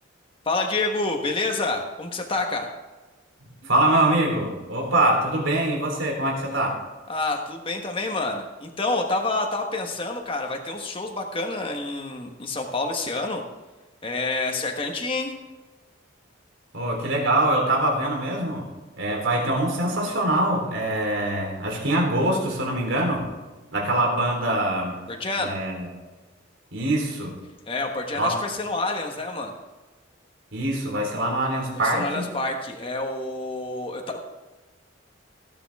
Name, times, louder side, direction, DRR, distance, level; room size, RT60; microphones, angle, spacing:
voice 1, 0.4-2.7 7.1-13.4 14.0-15.3 25.1-25.5 27.7-29.5 31.7-34.2, left 2 dB, 30° left, 2 dB, 1.3 m, -28 dB
voice 2, 3.6-6.8 16.7-18.7 19.0-23.3 23.7-25.0 25.4-25.9 26.7-27.4 28.2-28.4 30.5-32.3, right 1 dB, 85° right, -1 dB, 3.7 m, -24 dB
17.0 x 8.8 x 3.6 m, 1.2 s
head